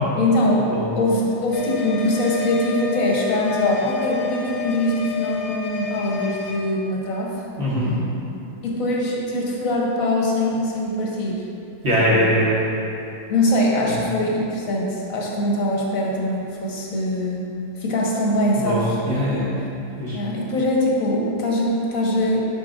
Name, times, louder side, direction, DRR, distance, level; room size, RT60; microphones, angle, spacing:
voice 1, 0.2-0.7 1.0-7.3 8.6-11.4 12.1-12.3 13.3-17.5 17.8-19.0 20.1-22.4, left 1 dB, 50° left, -3 dB, 1.2 m, -22 dB
sound 1, 1.5-6.6, left 7 dB, 70° left, 1.2 m, -30 dB
voice 2, 7.6-8.0 11.8-12.6 13.8-14.0 18.5-19.5 20.0-20.2, equal, 40° right, -7 dB, 1.3 m, -21 dB
11.5 x 4.9 x 2.6 m, 2.8 s
omnidirectional pair, 2.1 m